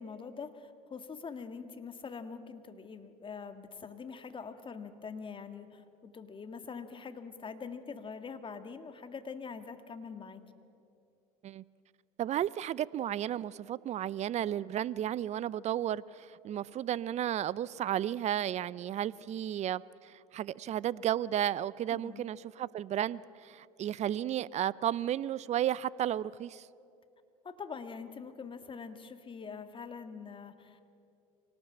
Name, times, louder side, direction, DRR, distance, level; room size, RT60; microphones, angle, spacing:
voice 1, 0.0-10.4 21.9-22.2 27.4-30.9, left 5 dB, 25° left, 9 dB, 1.9 m, -44 dB
voice 2, 12.2-26.7, right 11 dB, 35° right, 21 dB, 0.6 m, -33 dB
25.0 x 18.5 x 8.7 m, 2.7 s
hypercardioid pair, 80°, 19 cm